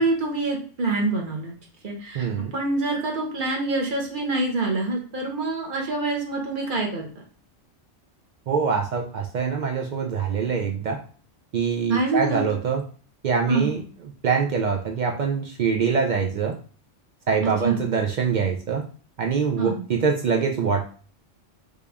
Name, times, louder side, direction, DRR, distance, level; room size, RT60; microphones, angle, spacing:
voice 1, 0.0-1.5 1.8-7.1 11.9-12.6 13.5-13.7 17.4-17.8 19.6-19.9, right 3 dB, 45° right, 1 dB, 1.0 m, -26 dB
voice 2, 2.1-2.5 8.5-11.0 11.5-12.8 13.2-13.8 14.2-16.6 17.3-18.8 19.2-20.8, right 6 dB, 70° right, 2 dB, 0.4 m, -24 dB
3.4 x 2.5 x 3.4 m, 0.41 s
omnidirectional pair, 1.3 m